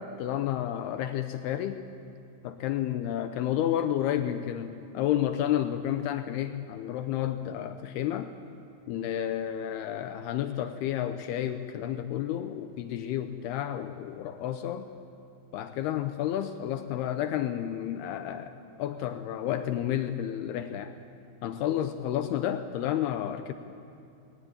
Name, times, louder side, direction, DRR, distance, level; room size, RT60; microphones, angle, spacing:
voice 1, 0.0-1.8 2.4-8.3 8.9-14.9 15.5-20.9 21.4-23.5, left 11 dB, 80° left, 8 dB, 2.4 m, -31 dB
19.5 x 19.0 x 8.8 m, 2.7 s
omnidirectional pair, 5.4 m